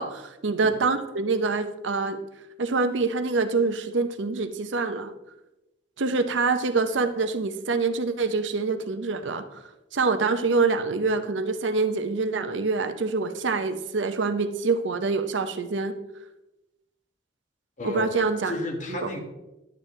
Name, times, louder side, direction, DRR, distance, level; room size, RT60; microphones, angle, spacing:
voice 1, 0.0-2.2 2.6-5.1 6.0-15.9 17.8-18.5 18.9-19.1, right 4 dB, 90° right, 9 dB, 0.7 m, -26 dB
voice 2, 17.8-19.2, left 1 dB, 45° left, 2 dB, 1.6 m, -32 dB
10.5 x 9.1 x 3.2 m, 0.98 s
head